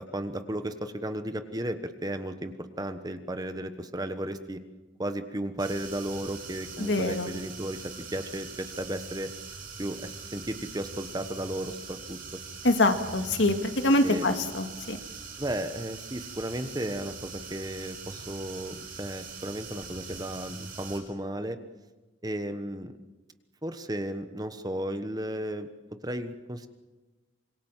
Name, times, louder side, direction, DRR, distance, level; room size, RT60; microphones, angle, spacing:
voice 1, 0.0-4.6 5.0-7.8 8.1-9.3 9.8-12.2 14.0-14.3 15.4-21.6 22.2-23.0 23.6-25.7 26.0-26.7, right 1 dB, 20° right, 9 dB, 1.2 m, -34 dB
sound 1, 5.6-21.0, right 5 dB, 50° right, 5.5 m, -42 dB
voice 2, 6.8-7.3 12.6-15.0, left 2 dB, 75° left, 6 dB, 2.2 m, -25 dB
26.0 x 23.0 x 7.4 m, 1.2 s
head